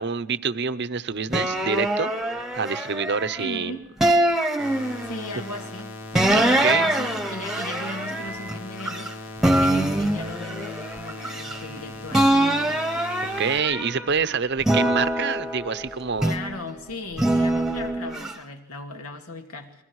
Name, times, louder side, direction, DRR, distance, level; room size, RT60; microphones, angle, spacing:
voice 1, 0.0-3.8 6.3-6.9 13.4-16.4, right 5 dB, 50° right, 12 dB, 0.8 m, -27 dB
sound 1, 1.3-3.5 4.0-5.4 6.1-9.1 9.4-11.8 12.1-14.1 14.6-16.6 17.2-18.3, right 1 dB, ahead, 1.1 m, -24 dB
voice 2, 3.4-3.9 5.0-9.1 9.6-12.8 16.2-19.8, left 2 dB, 85° left, 3 dB, 2.7 m, -37 dB
sound 2, 4.6-13.6, left 2 dB, 65° left, 1.8 m, -39 dB
27.0 x 22.0 x 4.8 m, 0.79 s
head